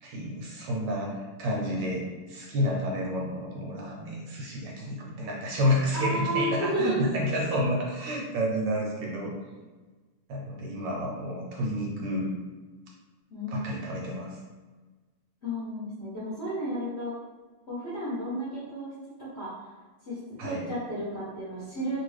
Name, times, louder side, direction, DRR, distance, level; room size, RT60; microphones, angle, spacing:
voice 1, 0.0-9.3 10.3-12.3 13.5-14.4 20.4-20.7, equal, 70° right, -2 dB, 1.2 m, -30 dB
voice 2, 5.9-7.1 13.3-13.6 15.4-17.1 17.7-18.9 19.2-19.5 20.1-22.0, right 1 dB, 50° left, -10 dB, 0.9 m, -32 dB
3.1 x 2.5 x 3.1 m, 1.3 s
omnidirectional pair, 2.2 m